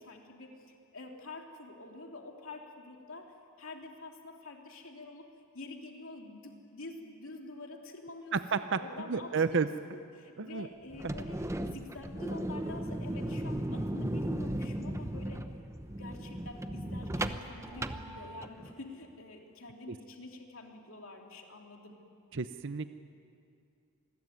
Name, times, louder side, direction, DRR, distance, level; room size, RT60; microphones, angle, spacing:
voice 1, 0.0-5.3 5.5-15.4 16.0-22.0, left 2 dB, 70° left, 1 dB, 3.1 m, -47 dB
voice 2, 8.3-8.8 9.1-9.7 10.4-10.7 22.3-22.9, right 5 dB, 60° right, 10 dB, 0.7 m, -30 dB
sound 1, 10.9-18.7, right 1 dB, 15° right, 0.9 m, -36 dB
27.0 x 21.5 x 9.5 m, 2.5 s
head